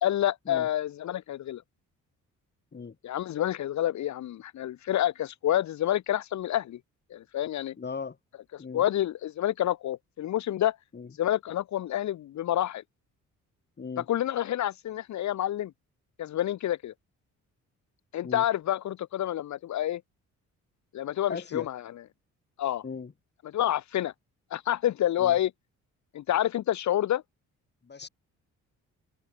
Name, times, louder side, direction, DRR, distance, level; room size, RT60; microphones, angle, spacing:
voice 1, 0.0-1.6 3.0-6.8 7.1-7.7 8.5-10.8 11.2-12.8 14.1-15.7 16.2-16.9 18.1-20.0 20.9-21.8 22.6-22.8 23.5-24.1 24.5-25.5 26.1-27.2, left 12 dB, 70° left, 1.5 m, -28 dB
voice 2, 7.8-8.2 8.6-8.8 10.9-11.1 13.8-14.1 18.2-18.4 21.3-21.7 22.8-23.1 25.2-25.4 27.8-28.1, left 5 dB, 35° left, 7.9 m, -38 dB
cardioid pair, 90°, 30 cm